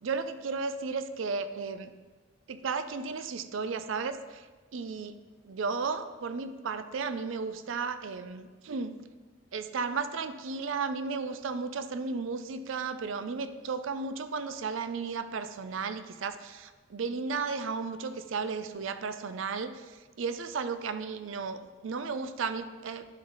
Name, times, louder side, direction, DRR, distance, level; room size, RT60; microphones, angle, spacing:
voice 1, 0.0-1.9 2.5-4.5 4.7-5.1 5.4-9.0 9.5-23.1, right 4 dB, 75° right, 11 dB, 0.4 m, -34 dB
11.5 x 3.9 x 3.8 m, 1.3 s
head